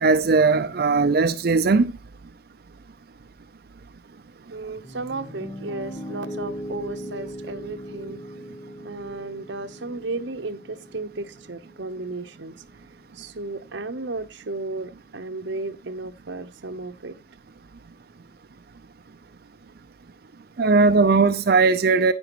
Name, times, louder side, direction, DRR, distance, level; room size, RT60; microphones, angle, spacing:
voice 1, 0.0-1.9 20.6-22.1, right 4 dB, 55° right, 0.5 m, -18 dB
voice 2, 4.5-8.2 8.8-12.5 13.1-17.1 21.0-21.1, right 2 dB, 75° right, 0.9 m, -34 dB
Piano, 4.8-12.9, equal, 20° left, 1.2 m, -39 dB
10.5 x 9.2 x 3.0 m
head